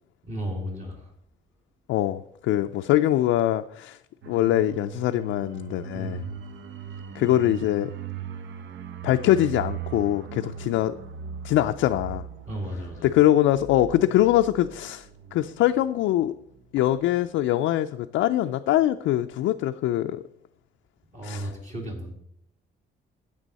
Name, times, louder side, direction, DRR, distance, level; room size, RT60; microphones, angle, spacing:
voice 1, 0.3-1.1 5.9-6.3 12.5-13.1 15.3-15.4 21.1-22.1, equal, 35° right, -1 dB, 2.4 m, -34 dB
voice 2, 1.9-4.0 4.3-6.2 7.1-7.9 9.0-10.9 11.4-12.2 13.0-16.3 16.7-20.2 21.2-21.5, left 13 dB, 85° left, 7 dB, 0.4 m, -23 dB
sound 1, 4.2-16.6 16.9-17.1, right 8 dB, 70° right, 0.8 m, -39 dB
9.8 x 7.6 x 4.1 m, 0.73 s
cardioid pair, 90°, 20 cm